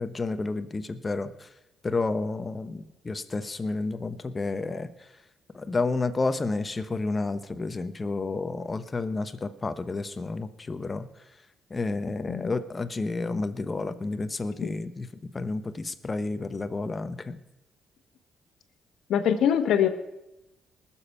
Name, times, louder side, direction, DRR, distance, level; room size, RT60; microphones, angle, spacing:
voice 1, 0.0-1.5 1.8-5.1 5.5-11.4 11.7-17.4, left 3 dB, 25° left, 11 dB, 1.0 m, -31 dB
voice 2, 19.1-19.9, left 9 dB, 75° left, 9 dB, 1.3 m, -23 dB
19.5 x 7.2 x 5.6 m, 0.95 s
cardioid pair, 90°, 0 cm